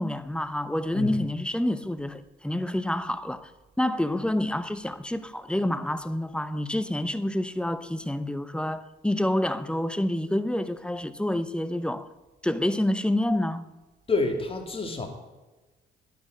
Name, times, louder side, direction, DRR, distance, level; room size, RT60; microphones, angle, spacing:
voice 1, 0.0-3.5 3.8-12.1 12.4-13.7, left 1 dB, 5° left, 0.8 m, -28 dB
voice 2, 14.1-15.1, left 3 dB, 30° left, 2.7 m, -28 dB
10.5 x 9.4 x 8.8 m
cardioid pair, 90°, 20 cm